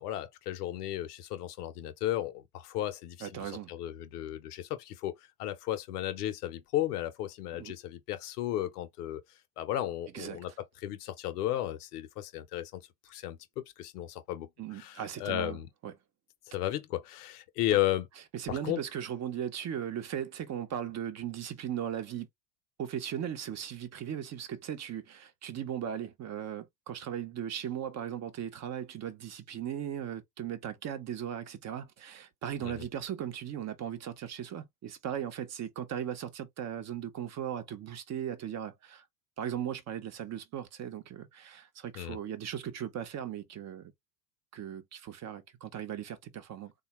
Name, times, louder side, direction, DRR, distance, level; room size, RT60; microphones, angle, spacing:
voice 1, 0.0-9.2 9.6-10.5 10.8-15.7 16.5-18.1 18.5-18.8 32.6-32.9 41.9-42.2, left 13 dB, 70° left, 0.8 m, -34 dB
voice 2, 3.2-3.7 7.6-7.7 10.1-10.4 14.6-15.6 15.8-15.9 18.3-22.3 22.8-39.0 39.4-43.9 44.5-46.7, right 9 dB, 35° right, 0.8 m, -38 dB
3.5 x 2.3 x 2.9 m
hypercardioid pair, 85°, 47 cm